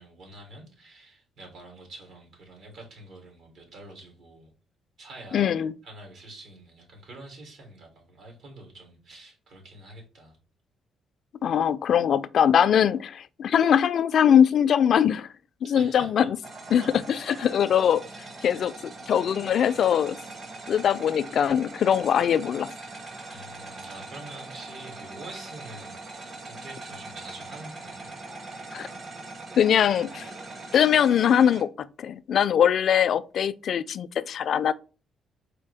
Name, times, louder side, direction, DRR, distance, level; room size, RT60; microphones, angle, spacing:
voice 1, 0.0-4.5 5.0-5.5 5.8-10.4 15.6-16.3 16.8-17.0 23.3-28.2, right 2 dB, 75° right, 2.6 m, -46 dB
voice 2, 5.3-5.7 11.4-15.3 15.6-16.4 16.7-16.8 17.3-18.0 18.4-20.2 20.7-22.7 28.7-28.9 29.6-30.3 30.7-34.7, left 9 dB, 60° left, 0.3 m, -22 dB
sound 1, 16.4-31.6, right 3 dB, 45° right, 1.3 m, -41 dB
4.5 x 3.3 x 3.3 m
cardioid pair, 90°, 0 cm